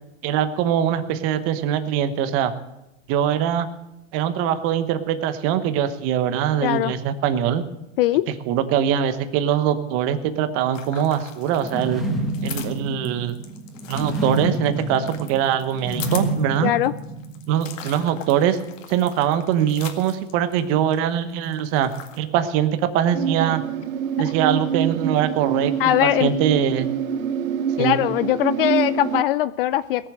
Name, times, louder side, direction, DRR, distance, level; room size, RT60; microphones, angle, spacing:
voice 1, 0.2-2.5 3.1-3.7 4.1-7.6 8.5-12.0 12.4-13.4 13.9-16.7 17.5-18.6 18.9-21.9 22.2-23.6 24.2-26.9 27.8-28.0, right 9 dB, 35° right, 10 dB, 1.1 m, -22 dB
voice 2, 6.6-6.9 8.0-8.3 16.6-16.9 24.2-24.3 25.8-26.3 27.8-30.1, left 13 dB, 45° left, 16 dB, 0.5 m, -21 dB
sound 1, 10.7-21.0 21.3-22.2, left 9 dB, 75° left, 2.1 m, -40 dB
sound 2, 11.6-17.7, right 1 dB, ahead, 1.5 m, -28 dB
sound 3, 23.1-29.2, right 8 dB, 90° right, 0.9 m, -26 dB
18.5 x 7.3 x 7.8 m, 0.90 s
hypercardioid pair, 135°, 39 cm